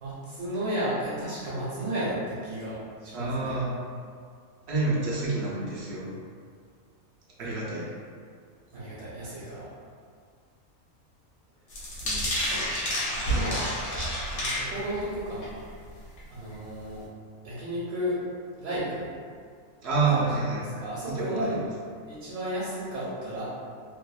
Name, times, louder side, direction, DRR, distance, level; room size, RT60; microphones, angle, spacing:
voice 1, 0.0-3.6 8.7-9.7 12.4-13.7 14.3-15.6 16.3-17.0 17.4-18.2 18.6-19.1 20.1-20.3 20.6-21.6 22.1-23.4, right 1 dB, 80° right, -9 dB, 1.1 m, -33 dB
voice 2, 3.1-3.7 4.7-6.1 7.4-7.8 12.0-12.3 19.8-20.6 21.1-21.5, right 3 dB, 65° right, -6 dB, 0.7 m, -28 dB
sound 1, 11.7-15.1 15.4-15.7 16.2-16.3 16.5-16.6, equal, 80° left, 1.2 m, -29 dB
2.8 x 2.0 x 2.3 m, 2.1 s
omnidirectional pair, 1.5 m